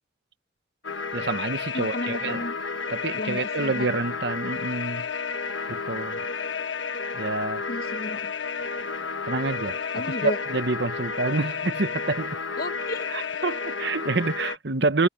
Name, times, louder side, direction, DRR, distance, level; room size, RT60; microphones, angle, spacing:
sound 1, 0.8-14.6, left 5 dB, 90° left, 1.2 m, -31 dB
voice 1, 1.1-2.4 2.9-5.1 5.7-6.2 7.1-7.6 9.3-9.8 10.2-12.4 13.1-15.1, right 3 dB, 65° right, 1.1 m, -27 dB
voice 2, 1.7-2.6 3.1-3.9 7.7-8.3 9.9-10.4 12.6-13.1, left 1 dB, 55° left, 1.2 m, -33 dB
head